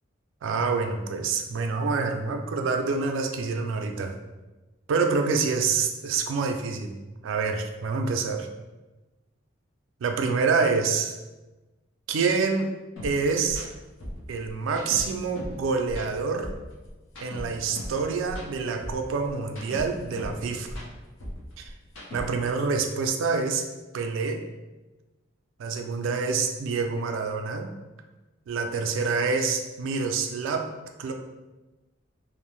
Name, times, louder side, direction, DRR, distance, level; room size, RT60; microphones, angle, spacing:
voice 1, 0.4-4.1 4.9-6.9 7.2-8.5 10.0-11.1 12.1-12.7 13.0-13.7 14.3-16.5 17.2-20.7 21.6-21.7 22.1-23.6 23.9-24.4 25.6-27.7 28.5-30.6 31.0-31.1, right 4 dB, 65° right, 5 dB, 0.3 m, -27 dB
sound 1, 13.0-13.1 13.4-13.6 14.0-15.6 15.9-18.0 18.3-20.4 20.6-22.5, equal, 70° left, 0.7 m, -38 dB
2.6 x 2.0 x 3.0 m, 1.1 s
head